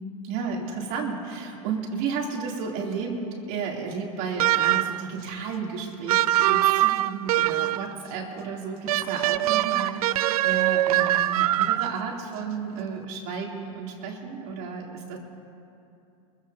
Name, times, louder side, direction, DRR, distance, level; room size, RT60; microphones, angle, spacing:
voice 1, 0.2-15.2, right 5 dB, 55° right, -2 dB, 3.4 m, -33 dB
sound 1, 4.4-5.1 6.1-7.9 8.9-12.1, right 14 dB, 85° right, 0.4 m, -23 dB
25.0 x 15.5 x 2.9 m, 2.7 s
hypercardioid pair, 115°, 19 cm